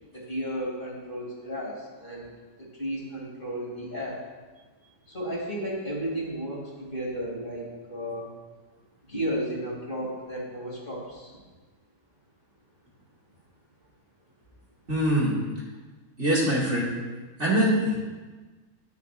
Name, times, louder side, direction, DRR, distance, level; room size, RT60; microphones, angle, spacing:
voice 1, 0.1-2.3 2.6-4.2 5.1-8.3 9.0-11.3, equal, 35° left, -5 dB, 3.1 m, -33 dB
voice 2, 14.9-15.4 16.2-16.9 17.4-18.0, equal, 50° right, -6 dB, 2.5 m, -23 dB
18.5 x 7.3 x 2.5 m, 1.3 s
omnidirectional pair, 1.5 m